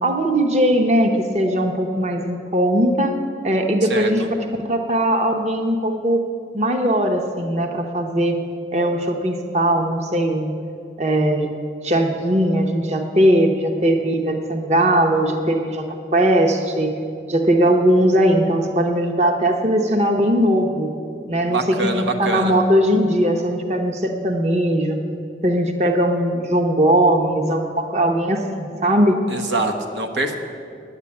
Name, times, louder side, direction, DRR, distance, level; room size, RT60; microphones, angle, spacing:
voice 1, 0.0-3.1 3.4-4.2 4.6-6.2 6.5-8.4 8.7-10.5 11.0-11.5 11.8-15.9 16.1-16.9 17.3-20.9 21.3-25.0 25.4-29.2, right 1 dB, 40° right, 4 dB, 0.8 m, -19 dB
voice 2, 3.9-4.3 21.4-22.5 29.3-30.3, right 2 dB, 90° right, 4 dB, 1.1 m, -25 dB
10.0 x 8.3 x 8.5 m, 2.5 s
head